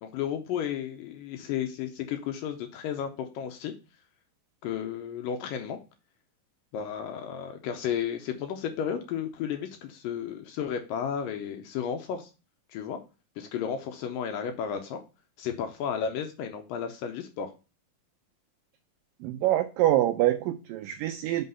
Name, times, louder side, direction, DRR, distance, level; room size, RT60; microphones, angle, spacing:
voice 1, 0.0-3.7 4.6-5.8 6.7-12.3 12.7-13.0 13.4-15.0 15.4-17.5, left 8 dB, 80° left, 5 dB, 2.1 m, -33 dB
voice 2, 19.2-21.5, right 14 dB, 85° right, 8 dB, 2.0 m, -25 dB
5.5 x 3.9 x 5.4 m, 0.32 s
omnidirectional pair, 4.3 m